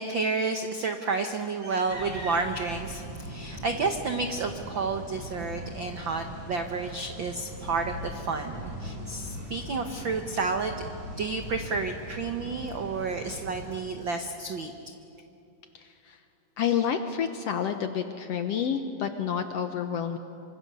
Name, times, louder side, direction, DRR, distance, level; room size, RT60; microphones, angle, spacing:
voice 1, 0.0-10.8 11.2-14.7, right 4 dB, 80° right, 6 dB, 1.0 m, -31 dB
sound 1, 1.9-13.8, equal, 60° right, 8.6 m, -40 dB
voice 2, 15.7-16.2 16.6-20.2, left 8 dB, 70° left, 7 dB, 1.6 m, -29 dB
26.5 x 25.0 x 6.8 m, 2.7 s
omnidirectional pair, 3.7 m